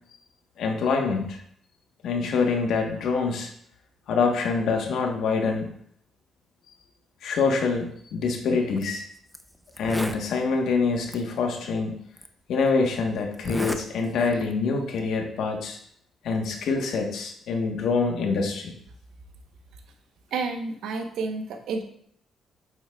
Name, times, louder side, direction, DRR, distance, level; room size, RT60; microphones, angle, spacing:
voice 1, 0.6-1.4 2.0-3.5 4.1-5.7 7.2-9.0 9.8-11.9 12.5-15.8 16.2-18.7, left 4 dB, 75° left, 2 dB, 1.3 m, -25 dB
Zipper (clothing), 8.7-8.8 9.3-9.4 9.7-10.3 11.1-11.2 12.2-12.3 13.3-13.8 14.2-14.5, equal, 5° left, 0.6 m, -32 dB
voice 2, 20.3-21.8, right 4 dB, 80° right, 5 dB, 1.0 m, -30 dB
8.8 x 7.1 x 2.4 m, 0.65 s
cardioid pair, 90°, 0 cm